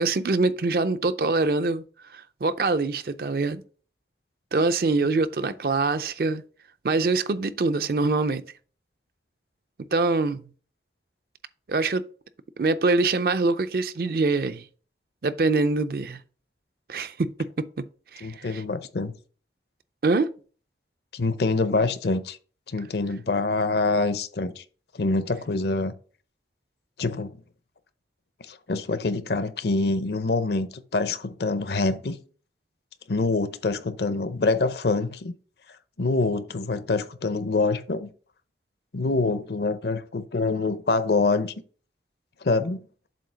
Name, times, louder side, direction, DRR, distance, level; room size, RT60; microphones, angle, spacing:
voice 1, 0.0-1.8 2.1-3.6 4.5-6.4 6.8-8.4 9.9-10.4 11.7-12.1 12.6-14.6 15.2-16.2 16.9-17.9 18.1-18.6 20.0-20.3, right 3 dB, 55° right, 0.5 m, -24 dB
voice 2, 18.2-19.1 21.1-22.4 22.7-24.6 24.9-25.9 27.0-27.3 28.5-32.2 33.1-35.3 36.0-38.1 38.9-41.5 42.4-42.9, left 3 dB, 70° left, 0.6 m, -25 dB
7.5 x 2.8 x 5.6 m
head